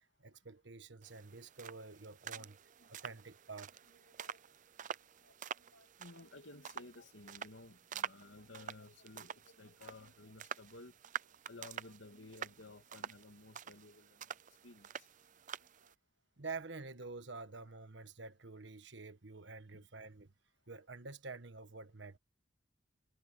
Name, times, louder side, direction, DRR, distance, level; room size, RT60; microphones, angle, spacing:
voice 1, 0.0-2.6 2.9-3.8 16.4-20.3 20.7-22.2, right 4 dB, 70° right, 1.5 m, -48 dB
sound 1, 1.0-15.9, right 8 dB, 45° right, 0.5 m, -48 dB
voice 2, 4.1-4.4 5.2-11.0 11.5-14.4 14.6-15.1 15.8-15.9 19.7-19.9, left 2 dB, 80° left, 2.6 m, -56 dB
head